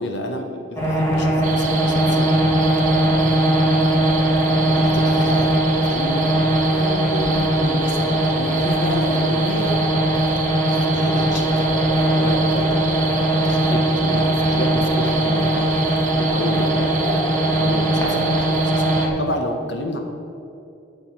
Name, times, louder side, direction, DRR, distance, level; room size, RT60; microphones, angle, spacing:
voice 1, 0.0-2.4 3.1-3.8 4.7-5.5 5.8-6.2 6.6-9.8 10.2-11.7 11.9-13.1 13.4-20.0, left 1 dB, 60° left, 4 dB, 1.1 m, -30 dB
sound 1, 0.8-19.1, right 1 dB, 15° left, 2.0 m, -19 dB
sound 2, 1.4-19.1, right 6 dB, 40° right, 0.9 m, -31 dB
9.0 x 6.5 x 6.0 m, 2.6 s
head